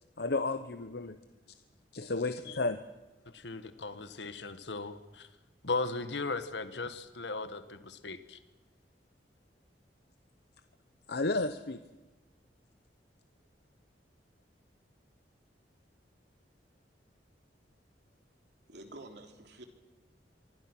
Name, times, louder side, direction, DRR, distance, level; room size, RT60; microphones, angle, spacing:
voice 1, 0.2-1.2 1.9-2.8 11.1-11.8, left 3 dB, 65° left, 10 dB, 1.0 m, -32 dB
voice 2, 3.3-5.3 5.6-8.4, left 3 dB, 85° left, 10 dB, 1.4 m, -37 dB
voice 3, 18.7-19.6, right 2 dB, 70° right, 4 dB, 3.5 m, -48 dB
25.5 x 23.5 x 6.2 m, 1.1 s
head